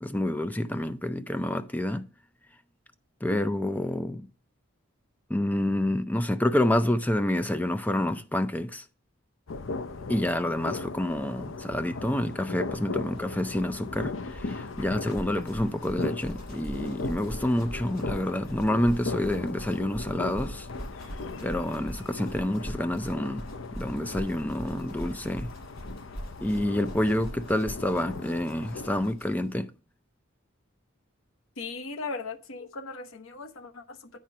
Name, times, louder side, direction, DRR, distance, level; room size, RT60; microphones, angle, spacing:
voice 1, 0.0-2.0 3.2-4.3 5.3-8.8 10.1-20.7 21.4-23.4 23.7-25.5 26.4-29.7, left 1 dB, 10° left, 0.4 m, -28 dB
sound 1, 9.5-29.1, left 3 dB, 70° left, 0.6 m, -38 dB
sound 2, 11.1-11.2 11.4-11.5 11.6-29.5, equal, 45° left, 4.9 m, -42 dB
voice 2, 31.6-34.2, left 3 dB, 85° left, 1.0 m, -38 dB
9.2 x 4.4 x 6.0 m
head